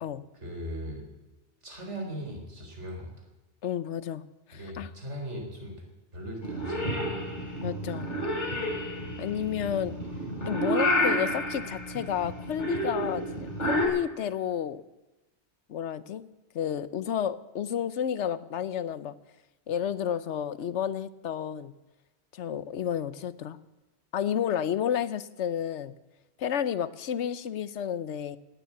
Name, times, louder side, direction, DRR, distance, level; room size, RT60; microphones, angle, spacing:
voice 1, 0.4-1.0 1.6-3.1 4.5-5.8 6.1-7.2, equal, 80° right, 1 dB, 4.4 m, -38 dB
voice 2, 3.6-4.2 4.5-4.9 7.6-8.1 9.2-10.0 10.5-14.8 15.7-16.2 16.5-19.1 19.7-21.7 22.3-23.6 24.1-25.9 26.4-28.4, left 9 dB, 80° left, 16 dB, 1.1 m, -31 dB
Purr / Meow, 6.4-13.9, equal, 40° left, 3.4 m, -30 dB
18.0 x 9.4 x 8.2 m, 1.1 s
omnidirectional pair, 1.2 m